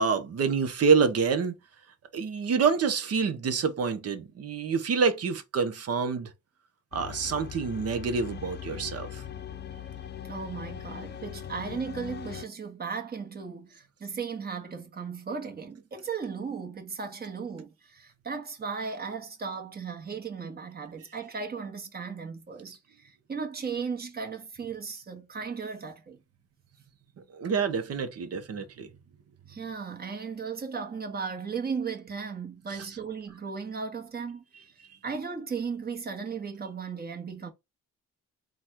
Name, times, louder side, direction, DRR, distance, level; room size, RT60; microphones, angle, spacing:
voice 1, 0.0-1.6 2.1-6.3 6.9-9.2 27.3-28.9 32.7-32.9, right 5 dB, 55° right, 1.0 m, -27 dB
sound 1, 6.9-12.5, left 9 dB, 35° left, 0.5 m, -40 dB
voice 2, 10.3-26.2 29.5-34.4 35.0-37.5, right 5 dB, 30° right, 1.3 m, -36 dB
4.0 x 2.4 x 4.5 m
cardioid pair, 90°, 30 cm